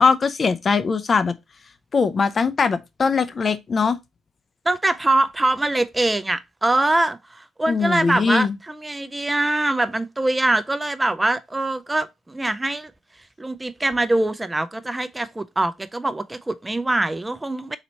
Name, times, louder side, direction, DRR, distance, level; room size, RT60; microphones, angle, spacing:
voice 1, 0.0-1.4 1.9-4.0 7.7-8.5, left 5 dB, 40° left, 0.5 m, -21 dB
voice 2, 4.7-12.9 13.4-17.8, right 2 dB, 15° right, 0.4 m, -23 dB
4.1 x 2.9 x 4.2 m
cardioid pair, 90°, 0 cm